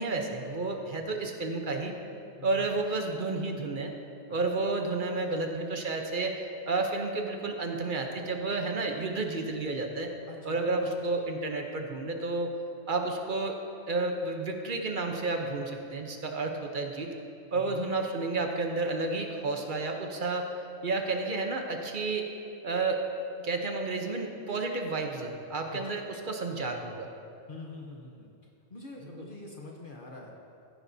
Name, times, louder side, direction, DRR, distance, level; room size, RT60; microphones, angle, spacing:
voice 1, 0.0-1.9 2.4-3.9 4.3-10.1 10.4-12.5 12.9-13.6 13.9-17.1 17.5-20.5 20.8-22.3 22.6-23.0 23.4-27.1 29.1-29.3, right 3 dB, 50° right, 3 dB, 1.0 m, -31 dB
voice 2, 10.3-10.8 17.5-17.8 25.7-25.8 27.5-28.3 28.7-30.3, left 2 dB, 50° left, -1 dB, 1.1 m, -45 dB
15.0 x 10.0 x 2.7 m, 2.6 s
omnidirectional pair, 1.1 m